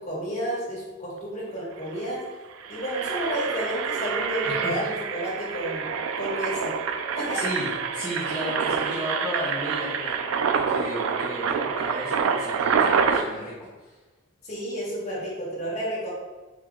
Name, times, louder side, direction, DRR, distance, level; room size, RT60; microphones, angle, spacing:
voice 1, 0.0-2.2 2.7-6.7 7.1-7.5 14.4-16.1, equal, 35° left, -6 dB, 1.5 m, -31 dB
Engine, 1.5-1.6 1.8-2.0 2.5-13.2, right 6 dB, 85° right, 0.3 m, -27 dB
voice 2, 4.5-4.8 7.3-14.0, equal, 5° left, -10 dB, 0.9 m, -34 dB
4.5 x 2.7 x 3.7 m, 1.2 s
head